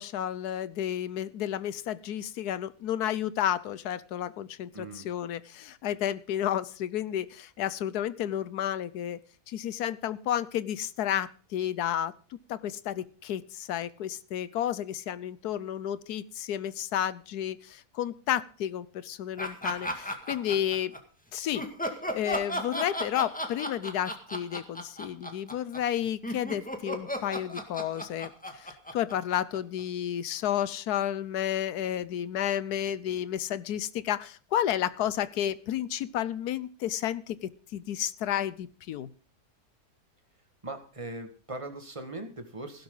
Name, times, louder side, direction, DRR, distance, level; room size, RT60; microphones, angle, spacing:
voice 1, 0.0-9.2 9.5-20.9 21.3-21.7 22.1-39.1, left 10 dB, 85° left, 17 dB, 1.3 m, -31 dB
voice 2, 4.7-5.1 40.6-42.8, right 2 dB, 20° right, 6 dB, 1.8 m, -40 dB
sound 1, 19.4-21.0 21.5-29.8, equal, 5° left, 1.8 m, -34 dB
16.5 x 12.0 x 3.9 m, 0.40 s
omnidirectional pair, 1.6 m